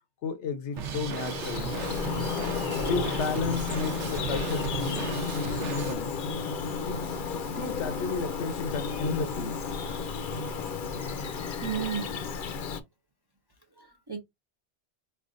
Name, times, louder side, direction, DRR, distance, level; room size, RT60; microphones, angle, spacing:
voice 1, 0.2-1.8 2.3-6.1 6.8-7.2 7.6-9.6, left 4 dB, 75° left, 1.0 m, -34 dB
Bird vocalization bird call bird song, 0.8-12.8, left 5 dB, 55° left, 0.7 m, -32 dB
Drum kit, 0.8-5.9, right 7 dB, 85° right, 1.0 m, -36 dB
voice 2, 11.6-12.1 13.8-14.2, right 8 dB, 35° right, 0.4 m, -33 dB
4.5 x 3.3 x 2.4 m
omnidirectional pair, 1.2 m